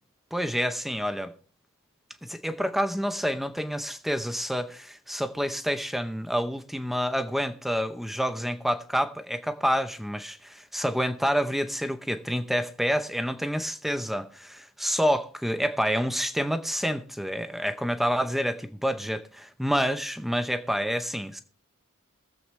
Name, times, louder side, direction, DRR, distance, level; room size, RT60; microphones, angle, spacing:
voice 1, 0.3-1.3 2.2-21.4, equal, ahead, 0.7 m, -28 dB
21.5 x 7.7 x 3.2 m
head